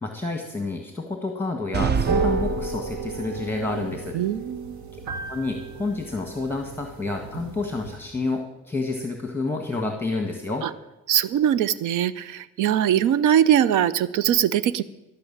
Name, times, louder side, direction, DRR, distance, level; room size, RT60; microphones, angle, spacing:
voice 1, 0.0-4.2 4.9-5.0 5.3-10.7, left 3 dB, 5° left, 4 dB, 1.6 m, -29 dB
sound 1, 1.7-3.4, right 5 dB, 35° right, 0.6 m, -26 dB
sound 2, 1.9-8.0, right 4 dB, 70° right, 1.8 m, -32 dB
voice 2, 4.1-4.8 10.6-10.7 11.1-14.8, right 10 dB, 90° right, 17 dB, 0.6 m, -21 dB
15.0 x 6.1 x 8.7 m, 1.0 s
cardioid pair, 90°, 30 cm